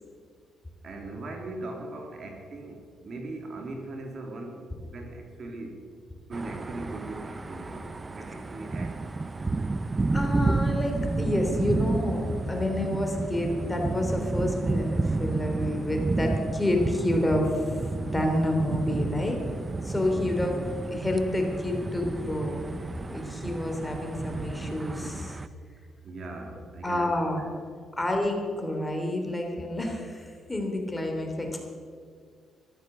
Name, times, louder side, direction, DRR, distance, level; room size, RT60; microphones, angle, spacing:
voice 1, 0.8-5.8 6.3-9.0 26.0-27.1 27.4-27.6, right 2 dB, 55° right, 2 dB, 2.8 m, -39 dB
sound 1, 6.3-25.5, right 3 dB, 25° right, 0.6 m, -31 dB
voice 2, 10.1-19.4 19.8-20.6 20.9-22.6 23.1-25.4 26.8-27.4 28.0-31.7, left 1 dB, 15° left, 2 dB, 3.1 m, -29 dB
14.0 x 12.5 x 6.8 m, 2.1 s
cardioid pair, 90°, 0 cm